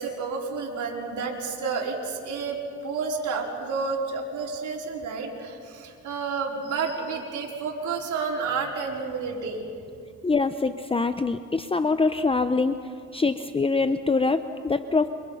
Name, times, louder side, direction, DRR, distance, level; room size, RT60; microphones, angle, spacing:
voice 1, 0.0-9.6, right 4 dB, 75° right, -2 dB, 4.9 m, -30 dB
voice 2, 10.2-12.8 13.1-15.1, left 4 dB, 20° left, 9 dB, 0.8 m, -24 dB
30.0 x 25.5 x 5.8 m, 2.3 s
cardioid pair, 90°, 30 cm